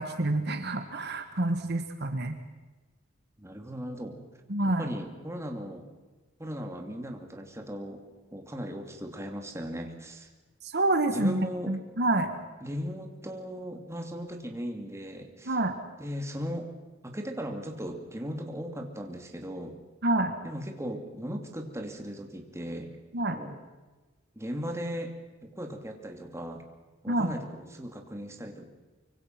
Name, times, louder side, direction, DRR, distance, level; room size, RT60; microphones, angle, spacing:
voice 1, 0.0-2.4 4.5-4.8 10.6-12.3 15.5-15.8 20.0-20.4 23.1-23.4 27.1-27.3, right 2 dB, 55° right, 7 dB, 1.7 m, -27 dB
voice 2, 3.4-4.2 4.6-5.9 6.4-8.0 8.3-10.3 11.1-11.8 12.6-15.6 16.0-16.7 17.0-19.8 20.4-22.9 23.3-23.6 24.4-26.6 27.0-28.7, equal, 15° right, 3 dB, 2.6 m, -37 dB
24.5 x 24.5 x 6.0 m, 1.2 s
head